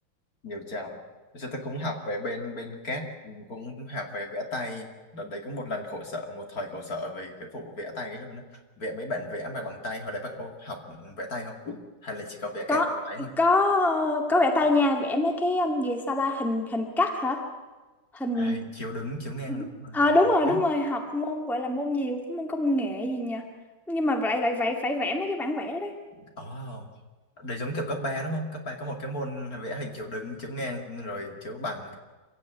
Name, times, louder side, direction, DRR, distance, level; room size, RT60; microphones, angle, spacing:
voice 1, 0.4-1.0 1.3-4.9 5.1-8.4 8.8-11.8 12.0-13.3 18.3-20.0 20.5-20.6 26.1-26.9 27.4-32.0, left 1 dB, 45° left, 3 dB, 2.7 m, -35 dB
voice 2, 13.4-17.4 18.1-18.6 19.5-23.4 23.9-25.9, left 2 dB, ahead, 3 dB, 2.0 m, -25 dB
25.5 x 16.5 x 9.3 m, 1.2 s
omnidirectional pair, 2.3 m